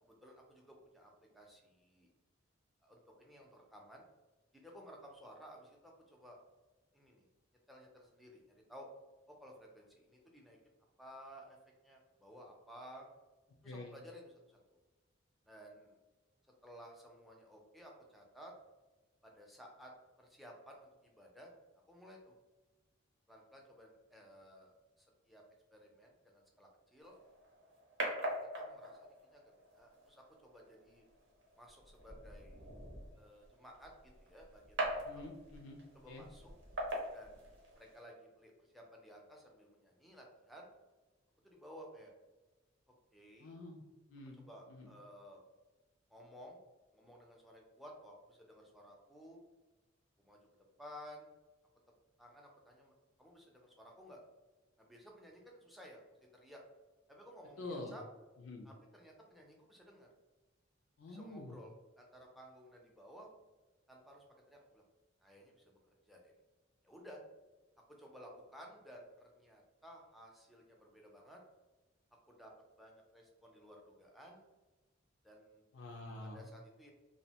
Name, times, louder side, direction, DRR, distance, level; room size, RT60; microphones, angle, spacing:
voice 1, 0.0-2.1 2.8-4.0 4.5-6.4 6.9-7.3 7.7-8.9 9.3-10.6 11.0-11.6 11.8-13.1 13.6-14.8 15.5-16.0 16.6-18.5 19.2-19.9 20.2-21.5 21.9-22.3 23.3-25.4 25.7-27.2 28.0-29.4 29.7-31.1 31.6-32.7 33.2-35.3 35.9-36.5 37.1-37.4 37.8-40.7 41.4-42.1 43.1-43.5 44.4-45.4 46.1-46.6 46.9-49.4 50.2-50.4 50.8-51.3 52.2-54.2 54.8-56.0 56.3-56.6 57.1-58.0 58.6-60.1 61.1-63.3 63.9-64.8 65.2-66.3 66.8-67.2 67.9-71.4 72.3-72.5 72.8-74.4 75.2-75.6 76.2-76.9, equal, ahead, 0 dB, 0.4 m, -56 dB
voice 2, 13.6-13.9 35.0-35.8 36.1-36.2 43.4-43.8 44.1-44.9 57.6-57.9 58.4-58.7 61.0-61.6 75.7-76.5, left 2 dB, 85° left, 1 dB, 0.4 m, -47 dB
sound 1, 27.0-38.0, right 1 dB, 80° right, 0.7 m, -44 dB
2.6 x 2.1 x 2.8 m, 1.2 s
head